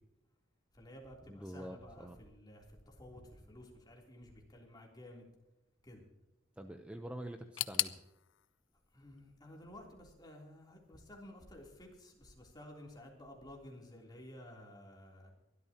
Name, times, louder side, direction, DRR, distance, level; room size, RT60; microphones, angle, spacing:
voice 1, 0.7-5.3 5.8-6.0 8.9-15.3, left 1 dB, 20° left, -1 dB, 3.4 m, -53 dB
voice 2, 1.3-2.2 6.6-8.0, right 1 dB, 5° right, 5 dB, 0.8 m, -46 dB
sound 1, 7.6-10.4 10.7-11.5 11.8-11.9 12.8-12.9, left 15 dB, 90° left, 0.6 m, -41 dB
23.5 x 12.5 x 3.0 m, 0.94 s
head